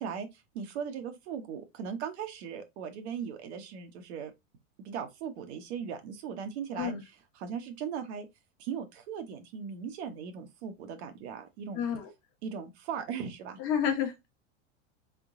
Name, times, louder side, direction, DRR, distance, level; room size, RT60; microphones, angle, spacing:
voice 1, 0.0-4.3 4.8-8.3 8.6-11.8 12.4-13.6, right 7 dB, 60° right, 1.1 m, -38 dB
voice 2, 11.7-12.1 13.6-14.3, left 8 dB, 35° left, 1.1 m, -30 dB
3.8 x 3.5 x 3.6 m
supercardioid pair, 160°, 38 cm